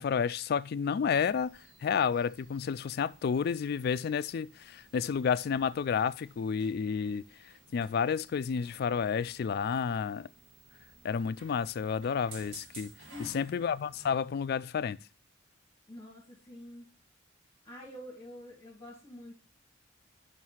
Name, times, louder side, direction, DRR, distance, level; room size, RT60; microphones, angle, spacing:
voice 1, 0.0-1.5 1.8-7.2 7.7-10.3 11.0-12.9 13.3-15.0, left 6 dB, 50° left, 0.3 m, -30 dB
sound 1, 1.1-14.2, right 3 dB, 70° right, 1.5 m, -56 dB
voice 2, 13.1-13.6 15.9-16.9 17.6-19.3, left 1 dB, 20° left, 2.0 m, -47 dB
5.7 x 4.7 x 5.5 m
head